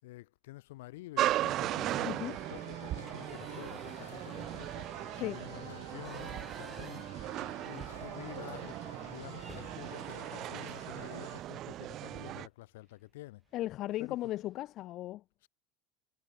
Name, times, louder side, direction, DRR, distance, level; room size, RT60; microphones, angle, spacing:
voice 1, 0.0-4.9 5.2-7.2 7.6-13.4 14.0-14.2 15.4-15.5, left 18 dB, 65° left, 5.6 m, -49 dB
sound 1, 1.2-1.6 2.0-2.1 2.5-8.5 8.8-8.9 9.3-11.5 12.8-13.1 13.5-13.6 13.9-14.6, right 4 dB, 20° right, 1.5 m, -56 dB
sound 2, 1.2-12.5, right 14 dB, 45° right, 0.5 m, -37 dB
sound 3, 1.5-11.4, left 5 dB, 85° left, 2.4 m, -52 dB
voice 2, 2.0-2.3 5.1-5.4 13.5-15.2, left 15 dB, 50° left, 1.1 m, -36 dB
figure-of-eight pair, 75°, 0 cm